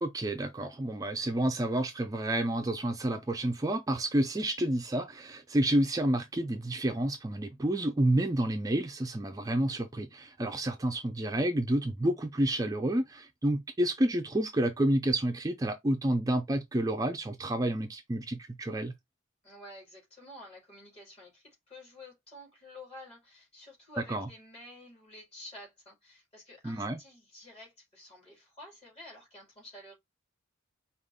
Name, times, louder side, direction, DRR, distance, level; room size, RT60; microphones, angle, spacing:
voice 1, 0.0-18.9 24.1-24.3 26.6-27.0, right 1 dB, 15° right, 0.4 m, -29 dB
voice 2, 19.4-30.0, left 1 dB, 30° left, 3.2 m, -50 dB
5.0 x 2.4 x 3.5 m
head